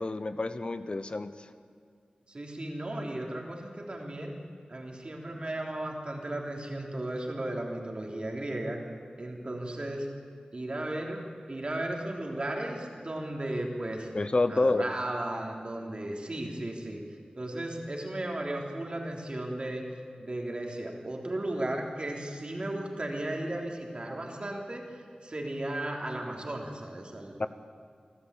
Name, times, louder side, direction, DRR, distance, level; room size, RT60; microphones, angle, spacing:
voice 1, 0.0-1.5 14.1-14.9 27.4-27.5, left 2 dB, 40° left, 11 dB, 0.8 m, -28 dB
voice 2, 2.3-4.4 4.7-8.8 9.2-10.1 10.5-11.2 11.5-14.1 14.5-17.0 17.3-19.8 20.2-24.8 25.2-27.4, right 1 dB, 40° right, 0 dB, 3.5 m, -35 dB
27.5 x 13.0 x 8.5 m, 2.2 s
wide cardioid pair, 80°, 3 cm